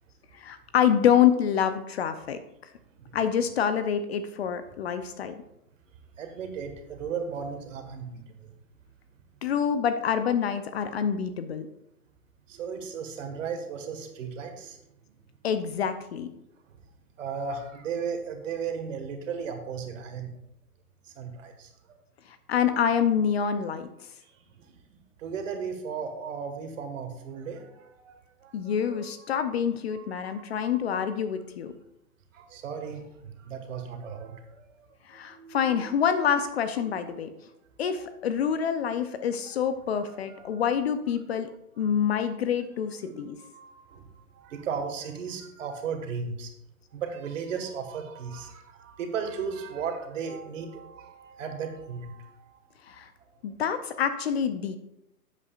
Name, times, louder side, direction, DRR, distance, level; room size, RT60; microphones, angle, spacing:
voice 1, 0.3-2.4 3.1-5.4 9.4-11.7 15.4-16.3 22.5-23.9 28.5-31.7 35.1-37.3 37.8-41.5 41.8-43.4 52.9-53.1 53.4-54.8, left 8 dB, 40° left, 10 dB, 0.6 m, -26 dB
voice 2, 6.2-8.5 12.5-14.8 15.1-15.2 16.7-16.8 17.2-20.3 21.0-22.0 24.2-29.1 29.9-30.8 32.3-34.9 35.1-35.8 36.8-37.2 38.0-38.1 39.4-39.5 40.1-40.6 43.4-46.5 46.9-52.6, right 6 dB, 55° right, 5 dB, 1.8 m, -36 dB
11.0 x 8.3 x 2.5 m, 0.80 s
hypercardioid pair, 135°, 47 cm